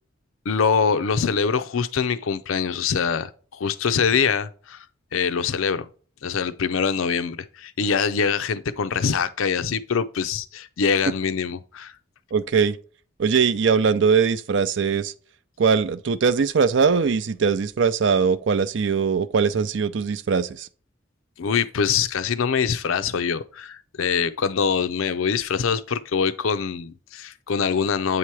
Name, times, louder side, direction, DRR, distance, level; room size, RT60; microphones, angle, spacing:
voice 1, 0.4-4.9 5.1-5.9 6.2-11.9 21.4-28.2, left 6 dB, 85° left, 0.5 m, -24 dB
voice 2, 12.3-12.8 13.2-15.1 15.6-20.7, right 6 dB, 65° right, 0.4 m, -21 dB
8.2 x 2.9 x 4.7 m
head